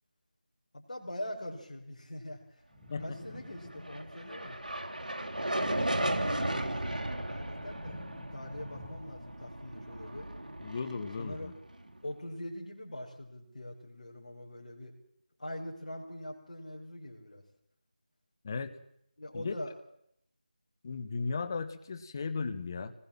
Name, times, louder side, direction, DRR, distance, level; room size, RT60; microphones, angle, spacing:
voice 1, 0.7-2.6 3.0-4.6 5.8-10.3 11.2-11.5 12.0-15.0 15.4-17.4 19.2-19.7, left 1 dB, 50° left, 0 dB, 5.7 m, -43 dB
sound 1, 2.7-4.3 5.2-6.7 7.1-9.5, left 1 dB, 5° left, 7.9 m, -50 dB
sound 2, 3.6-12.0, right 1 dB, 65° right, 3.2 m, -35 dB
voice 2, 10.6-11.5 18.4-18.7 19.3-19.5 20.8-22.9, left 4 dB, 25° left, 10 dB, 1.6 m, -36 dB
25.0 x 20.5 x 7.6 m, 0.73 s
figure-of-eight pair, 165°, 5 cm